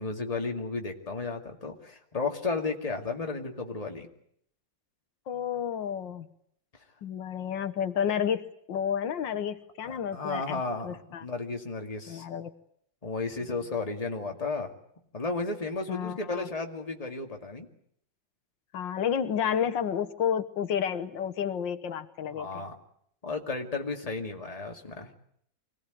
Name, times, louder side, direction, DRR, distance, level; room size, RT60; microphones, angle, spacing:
voice 1, 0.0-4.1 9.8-12.3 13.0-14.7 15.1-17.7 22.4-22.7 23.2-25.1, left 3 dB, 20° left, 3 dB, 2.3 m, -33 dB
voice 2, 5.3-6.3 7.0-8.4 8.7-11.3 12.1-12.5 15.9-16.5 18.7-22.6, left 8 dB, 85° left, 8 dB, 1.9 m, -31 dB
25.0 x 18.5 x 9.3 m, 0.68 s
omnidirectional pair, 2.0 m